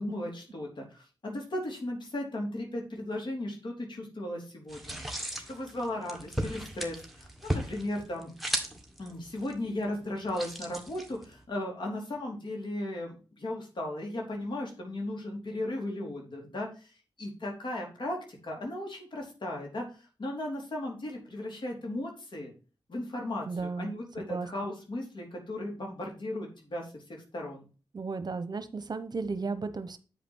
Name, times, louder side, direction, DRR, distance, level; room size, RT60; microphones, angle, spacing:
voice 1, 0.0-5.1 5.5-8.3 9.0-16.9 17.2-22.5 22.9-27.7, left 1 dB, 60° left, 0 dB, 3.2 m, -36 dB
sound 1, 4.7-11.4, right 1 dB, ahead, 1.8 m, -37 dB
voice 2, 23.5-23.9 24.3-24.5 27.9-30.0, right 4 dB, 50° right, 11 dB, 0.9 m, -34 dB
8.8 x 5.1 x 4.4 m, 0.35 s
cardioid pair, 50°, 9 cm